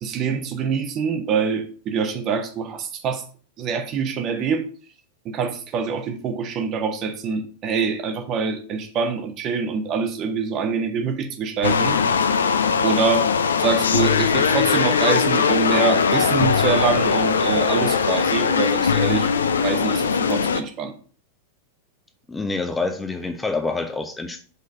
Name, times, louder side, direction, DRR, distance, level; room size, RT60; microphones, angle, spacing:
voice 1, 0.0-3.2 3.6-4.6 5.2-12.0 12.8-13.2 13.6-19.3 19.6-20.9, right 5 dB, 35° right, 6 dB, 1.0 m, -25 dB
sound 1, 11.6-20.6, left 6 dB, 70° left, 0.5 m, -20 dB
voice 2, 22.3-24.4, left 3 dB, 10° left, 7 dB, 0.6 m, -27 dB
5.4 x 3.9 x 5.2 m, 0.42 s
figure-of-eight pair, 90°, 0 cm